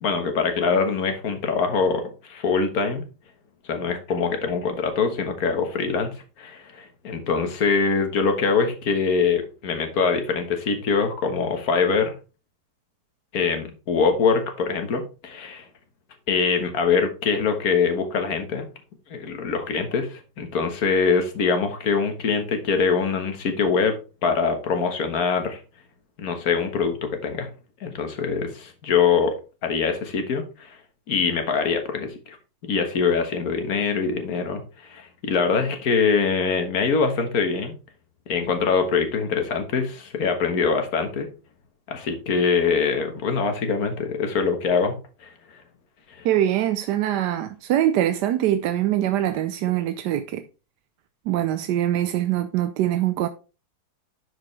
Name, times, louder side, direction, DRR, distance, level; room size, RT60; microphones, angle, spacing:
voice 1, 0.0-3.0 3.7-12.1 13.3-15.6 16.3-18.7 19.1-24.0 24.2-25.6 26.2-27.5 27.8-29.3 29.6-30.8 31.1-32.4 32.7-37.7 38.3-41.3 41.9-45.3 46.2-46.3, left 5 dB, 60° left, 1.7 m, -23 dB
voice 2, 46.2-50.4 51.3-53.3, right 12 dB, 75° right, 1.2 m, -23 dB
11.0 x 5.0 x 3.2 m
omnidirectional pair, 1.9 m